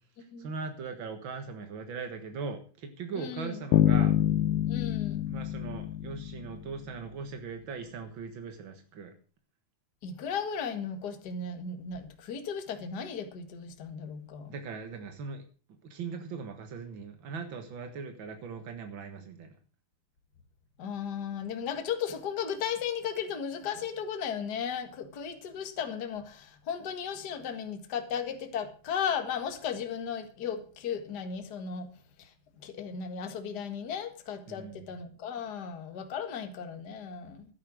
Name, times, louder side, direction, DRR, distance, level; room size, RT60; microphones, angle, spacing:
voice 1, 0.4-4.1 5.3-9.1 14.5-15.4 15.9-19.5 34.5-34.9, right 5 dB, 75° right, 1.1 m, -39 dB
voice 2, 3.1-3.6 4.7-5.3 10.0-14.5 20.8-31.9 32.2-32.3 32.6-37.5, left 7 dB, 50° left, 1.2 m, -35 dB
sound 1, 3.7-6.8, left 12 dB, 75° left, 2.4 m, -26 dB
13.0 x 9.9 x 6.3 m
omnidirectional pair, 4.4 m